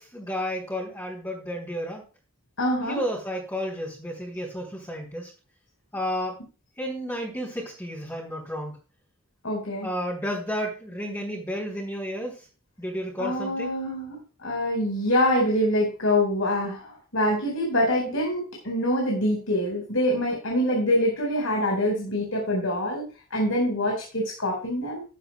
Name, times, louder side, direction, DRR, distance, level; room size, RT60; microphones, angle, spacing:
voice 1, 0.0-2.0 2.9-5.3 5.9-6.4 6.8-8.8 9.8-12.4 12.8-13.8, equal, 15° left, -6 dB, 3.7 m, -32 dB
voice 2, 2.6-3.0 9.4-9.9 13.2-14.2 14.4-23.1 23.3-25.0, left 1 dB, 85° left, -1 dB, 4.8 m, -25 dB
14.5 x 11.5 x 2.3 m, 0.34 s
head